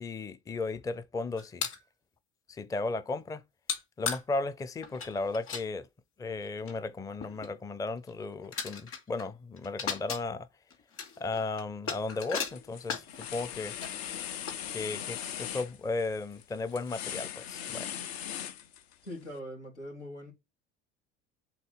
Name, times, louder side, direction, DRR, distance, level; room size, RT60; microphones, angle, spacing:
voice 1, 0.0-1.7 2.5-3.4 4.0-5.9 6.2-10.5 11.2-13.8 14.7-18.0, left 3 dB, 10° left, 0.5 m, -35 dB
sound 1, 1.4-1.8 3.7-4.2 4.8-5.6 6.4-6.5 6.7-6.8 7.2-7.5 8.1-8.2 8.4-9.3 9.6-10.2 10.7-13.3 13.8-13.9 14.5-15.1 15.6-15.7 16.3-16.4 16.7-17.0, left 6 dB, 40° left, 2.6 m, -36 dB
sound 2, 11.9-12.2 12.5-19.1, left 10 dB, 65° left, 0.9 m, -39 dB
voice 2, 19.0-20.3, equal, 90° left, 2.9 m, -42 dB
8.1 x 3.9 x 5.7 m
figure-of-eight pair, 65°, 34 cm